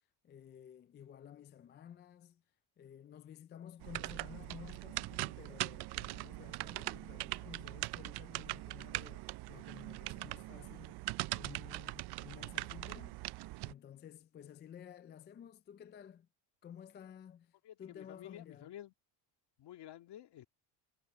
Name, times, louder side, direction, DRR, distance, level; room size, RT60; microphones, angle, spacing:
voice 1, 0.2-2.4 2.8-11.1 11.3-13.2 13.6-16.3 16.6-18.7, left 9 dB, 25° left, 0.3 m, -53 dB
sound 1, 3.8-13.7, right 19 dB, 55° right, 0.5 m, -41 dB
voice 2, 17.6-18.9 19.6-20.5, left 12 dB, 55° left, 2.0 m, -51 dB
cardioid pair, 130°, 50 cm